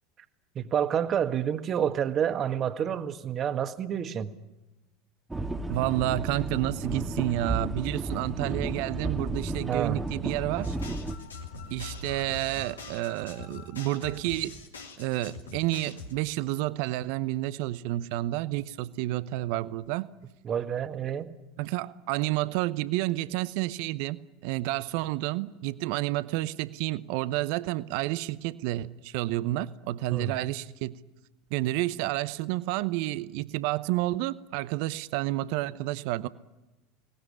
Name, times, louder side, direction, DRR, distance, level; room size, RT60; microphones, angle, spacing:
voice 1, 0.5-4.3 9.7-10.0 20.4-21.3 30.1-30.4, right 8 dB, 35° right, 9 dB, 1.7 m, -29 dB
sound 1, 5.3-11.2, right 2 dB, 10° right, 1.6 m, -33 dB
voice 2, 5.7-10.8 11.7-14.6 15.0-20.1 21.6-31.0 31.5-36.3, right 16 dB, 60° right, 15 dB, 0.8 m, -30 dB
sound 2, 10.6-16.1, left 3 dB, 80° left, 2.7 m, -43 dB
23.0 x 18.5 x 10.0 m, 1.1 s
figure-of-eight pair, 80°, 0 cm